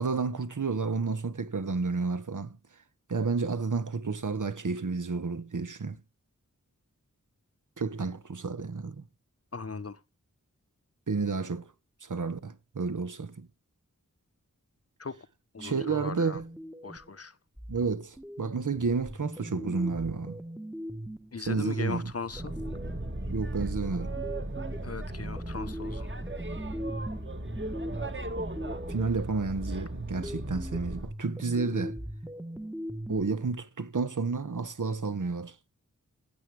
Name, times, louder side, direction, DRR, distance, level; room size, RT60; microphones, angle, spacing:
voice 1, 0.0-2.6 3.1-6.0 7.8-9.0 11.1-11.7 12.0-13.5 15.6-16.5 17.7-20.4 21.5-22.1 23.3-24.2 28.9-32.0 33.1-35.5, right 4 dB, 70° right, 1.2 m, -31 dB
voice 2, 9.5-10.0 15.0-15.2 15.5-16.4 16.8-17.4 21.3-22.5 24.8-26.1, left 4 dB, 50° left, 1.0 m, -38 dB
sound 1, 15.6-17.1 17.6-23.2 23.6-29.2 29.6-33.5, equal, 5° right, 1.1 m, -40 dB
Boat Water vehicle, 22.3-31.1, right 1 dB, 35° right, 1.7 m, -37 dB
15.5 x 7.8 x 3.3 m
wide cardioid pair, 60°, 32 cm